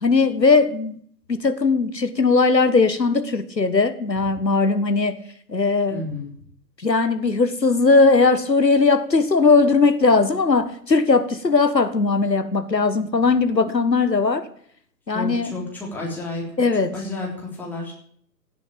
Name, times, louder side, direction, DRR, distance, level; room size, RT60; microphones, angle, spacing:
voice 1, 0.0-1.0 1.3-5.2 5.5-6.0 6.8-14.4 15.1-15.5 16.6-16.9, left 4 dB, 85° left, 10 dB, 1.5 m, -19 dB
voice 2, 5.9-6.3 15.1-16.5 16.9-17.9, left 3 dB, 5° left, -3 dB, 3.6 m, -31 dB
16.5 x 7.7 x 8.6 m, 0.62 s
figure-of-eight pair, 130°, 49 cm